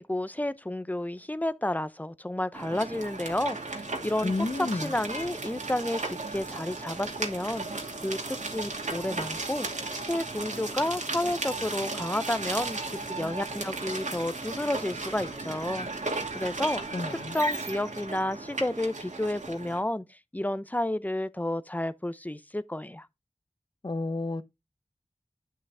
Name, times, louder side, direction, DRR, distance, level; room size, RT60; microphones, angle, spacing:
voice 1, 0.0-4.3 4.6-9.7 10.0-12.8 13.1-16.8 17.3-23.1, left 1 dB, 15° left, 0.7 m, -31 dB
sound 1, 2.5-19.8, right 3 dB, 90° right, 2.6 m, -35 dB
voice 2, 4.2-4.9 16.9-17.4 23.8-24.4, left 2 dB, 40° left, 0.9 m, -30 dB
10.5 x 5.7 x 3.5 m
wide cardioid pair, 50°, 12 cm